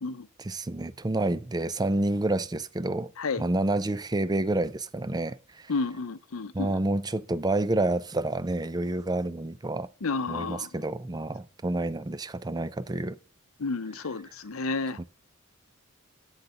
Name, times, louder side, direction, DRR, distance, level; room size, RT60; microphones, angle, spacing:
voice 1, 0.4-3.1 3.4-5.7 6.5-9.9 10.3-13.2 15.0-15.1, right 2 dB, 20° right, 0.5 m, -29 dB
voice 2, 5.7-6.8 10.0-10.7 13.6-15.0, left 4 dB, 70° left, 0.7 m, -31 dB
12.0 x 4.0 x 7.0 m
head